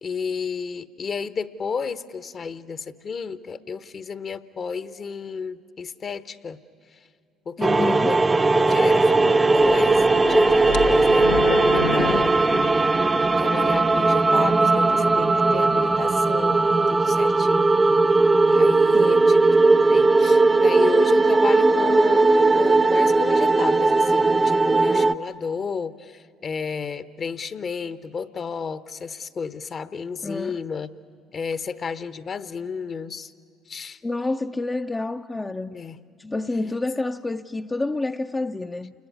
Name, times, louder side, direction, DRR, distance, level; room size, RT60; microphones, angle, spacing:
voice 1, 0.0-6.6 7.5-8.2 8.5-11.3 11.7-12.7 13.4-16.6 16.9-17.7 18.5-19.5 19.9-30.9 31.3-33.3 33.7-34.0 35.7-36.0, left 5 dB, 40° left, 1.0 m, -32 dB
voice 2, 7.6-8.1 18.9-19.4 30.2-30.6 34.0-35.8 36.2-38.9, left 2 dB, 20° left, 0.6 m, -28 dB
sound 1, 7.6-25.1, right 3 dB, 20° right, 0.7 m, -18 dB
sound 2, 9.6-13.3 13.8-13.9 14.5-14.6, left 6 dB, 80° left, 1.3 m, -30 dB
28.5 x 20.0 x 9.5 m
hypercardioid pair, 60°, 0 cm